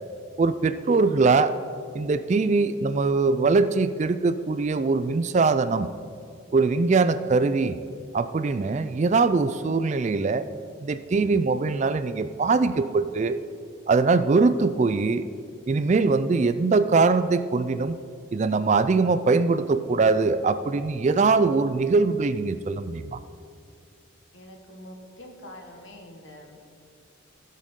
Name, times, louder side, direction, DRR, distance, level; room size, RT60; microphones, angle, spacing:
voice 1, 0.4-1.5 1.9-5.9 6.5-7.8 8.1-10.5 10.8-13.4 13.9-15.2 15.7-18.0 18.3-23.2, right 4 dB, 35° right, 12 dB, 0.3 m, -22 dB
voice 2, 24.3-26.6, left 1 dB, 65° left, 2 dB, 1.6 m, -45 dB
15.5 x 7.5 x 3.7 m, 2.4 s
head